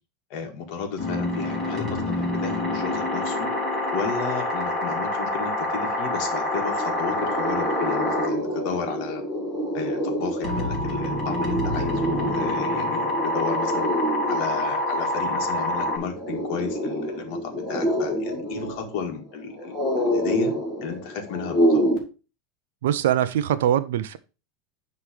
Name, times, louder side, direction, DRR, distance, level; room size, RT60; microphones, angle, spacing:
voice 1, 0.3-3.5 3.9-9.2 9.7-13.9 14.3-19.8 20.1-20.5 20.8-21.8, left 6 dB, 45° left, 1.7 m, -33 dB
sound 1, 1.0-8.4 10.4-16.0, left 1 dB, 5° right, 2.7 m, -27 dB
sound 2, 5.8-22.0, equal, 15° left, 2.0 m, -28 dB
voice 2, 22.8-24.2, right 10 dB, 90° right, 0.6 m, -22 dB
9.5 x 3.2 x 5.0 m
supercardioid pair, 170°, 0 cm